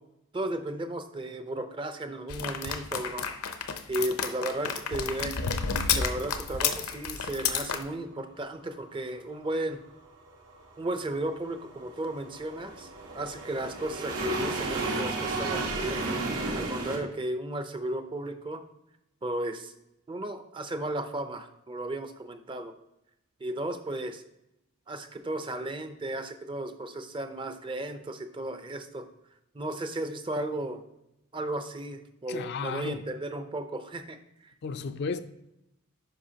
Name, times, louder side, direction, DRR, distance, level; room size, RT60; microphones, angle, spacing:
voice 1, 0.3-3.3 3.9-5.4 5.9-9.8 10.8-12.9 13.1-16.0 16.5-18.6 19.2-19.7 20.1-22.7 23.4-24.2 24.9-29.1 29.5-30.8 31.3-34.2 34.4-34.5, right 1 dB, 20° right, 0.5 m, -34 dB
sound 1, 2.3-7.8, left 6 dB, 80° left, 0.7 m, -30 dB
sound 2, 10.1-17.0, right 3 dB, 85° right, 1.7 m, -33 dB
voice 2, 32.3-33.1 34.6-35.2, left 4 dB, 50° left, 0.4 m, -33 dB
10.0 x 5.6 x 2.8 m
head